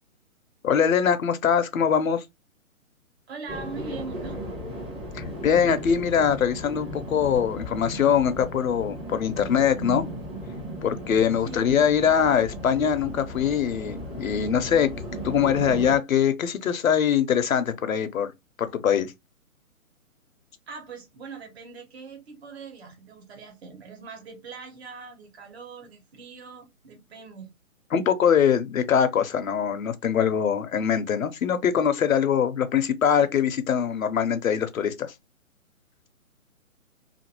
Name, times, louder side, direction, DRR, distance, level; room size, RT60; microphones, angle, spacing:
voice 1, 0.6-2.2 5.1-10.1 10.8-14.9 15.2-18.3 18.6-19.1 27.9-35.1, left 8 dB, 70° left, 0.7 m, -23 dB
voice 2, 3.3-4.4 11.4-11.7 20.7-27.5, right 5 dB, 45° right, 1.2 m, -41 dB
sound 1, 3.5-16.0, equal, 15° right, 0.8 m, -36 dB
2.6 x 2.5 x 2.8 m
figure-of-eight pair, 135°, 42 cm